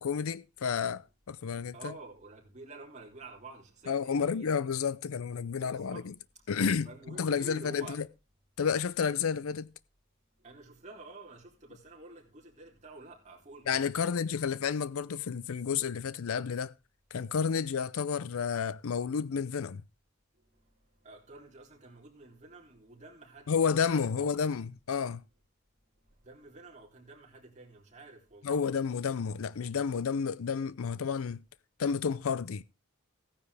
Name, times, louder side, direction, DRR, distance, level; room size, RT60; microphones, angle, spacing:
voice 1, 0.0-1.9 3.9-6.1 6.5-6.9 7.2-8.0 8.6-9.7 13.7-16.7 17.1-19.8 23.5-25.2 28.4-31.4 31.8-32.6, left 6 dB, 75° left, 0.5 m, -31 dB
voice 2, 1.7-4.6 5.6-6.0 6.8-8.0 10.4-14.2 21.0-24.2 26.2-28.6, right 2 dB, 35° right, 3.1 m, -50 dB
15.5 x 9.7 x 3.4 m
head